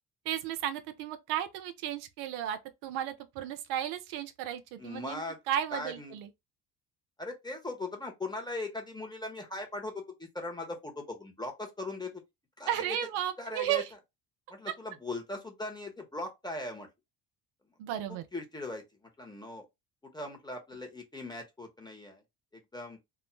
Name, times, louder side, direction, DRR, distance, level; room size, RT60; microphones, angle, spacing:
voice 1, 0.3-6.3 12.7-13.9 14.7-14.8 17.8-18.2, right 11 dB, 80° right, 0.5 m, -34 dB
voice 2, 4.8-5.4 5.7-6.2 7.2-12.2 12.6-13.0 13.4-13.8 14.5-16.9 18.1-18.8 19.2-19.6 20.1-22.2 22.5-23.0, left 2 dB, 10° left, 1.0 m, -39 dB
2.4 x 2.0 x 3.1 m
supercardioid pair, 65°, 43 cm